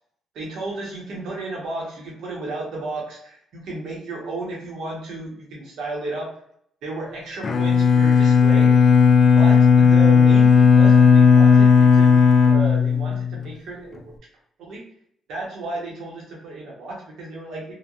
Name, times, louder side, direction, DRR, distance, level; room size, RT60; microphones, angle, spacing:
voice 1, 0.3-6.3 6.8-8.7 9.3-14.0 14.7-14.8 15.3-17.7, right 2 dB, 80° right, -3 dB, 1.0 m, -33 dB
Bowed string instrument, 7.4-13.5, left 6 dB, 50° left, 0.4 m, -14 dB
3.2 x 2.2 x 2.5 m, 0.66 s
cardioid pair, 90°, 0 cm